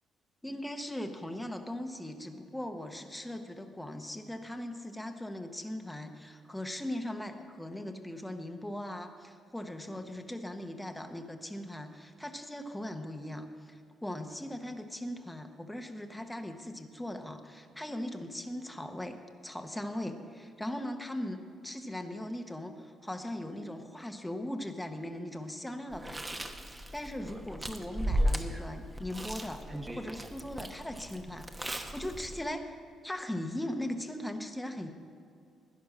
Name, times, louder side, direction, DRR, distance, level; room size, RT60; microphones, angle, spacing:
voice 1, 0.4-32.8 33.0-34.9, left 1 dB, 5° left, 5 dB, 0.9 m, -39 dB
Chewing mastication, 25.9-32.5, equal, 15° right, 1.0 m, -36 dB
11.5 x 10.0 x 6.2 m, 2.3 s
cardioid pair, 90°, 0 cm